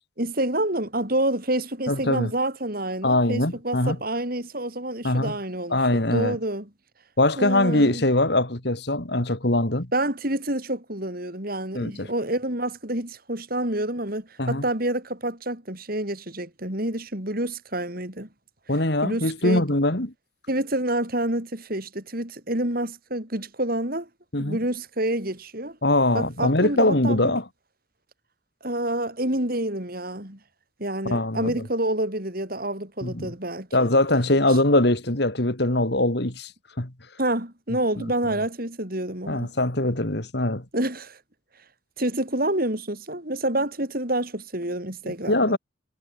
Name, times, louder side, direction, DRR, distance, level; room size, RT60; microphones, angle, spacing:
voice 1, 0.2-6.7 7.4-8.0 9.9-18.3 19.0-19.6 20.5-24.1 24.4-25.8 26.1-27.3 28.6-30.4 30.8-33.9 37.2-39.5 40.7-41.2 42.0-45.6, right 1 dB, 45° right, 5.2 m, -28 dB
voice 2, 1.9-2.3 3.0-4.0 5.0-5.3 5.7-6.4 7.2-9.9 11.7-12.1 14.4-14.6 18.7-20.1 24.3-24.6 25.8-27.4 31.0-31.6 33.0-33.3 33.7-36.5 36.8-36.9 38.0-38.1 39.3-40.6 45.3-45.6, left 1 dB, 55° left, 2.6 m, -22 dB
head